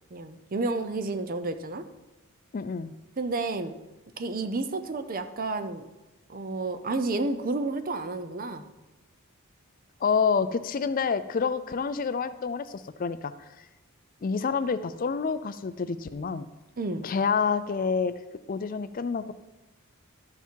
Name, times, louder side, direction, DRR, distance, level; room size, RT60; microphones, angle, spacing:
voice 1, 0.1-1.9 3.2-3.7 4.2-5.8 6.3-8.7 16.8-17.1, right 3 dB, 40° right, 10 dB, 0.6 m, -31 dB
voice 2, 2.5-2.9 10.0-13.7 14.2-16.5 17.0-18.1 18.5-19.3, left 5 dB, 40° left, 13 dB, 0.3 m, -28 dB
12.5 x 5.8 x 4.6 m, 1.0 s
head